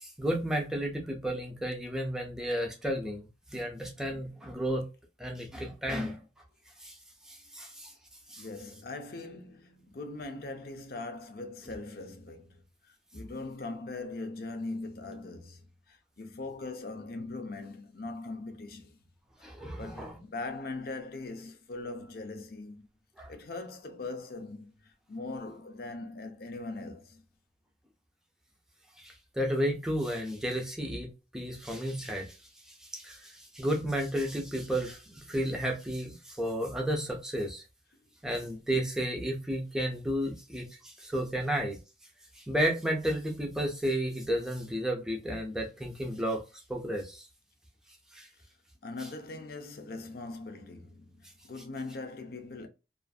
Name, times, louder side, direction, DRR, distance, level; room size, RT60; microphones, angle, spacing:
voice 1, 0.0-4.9 5.2-6.2 6.8-6.9 7.3-7.9 8.3-8.5 19.4-20.2 23.2-23.3 29.0-32.3 32.9-37.6 38.2-41.8 42.5-46.4 46.7-47.2 48.1-48.3, equal, 5° right, 0.5 m, -32 dB
voice 2, 8.4-12.6 13.1-18.9 19.4-22.9 23.3-24.7 25.1-27.2 41.4-41.5 48.8-52.7, left 3 dB, 50° left, 0.5 m, -41 dB
2.5 x 2.4 x 2.3 m
head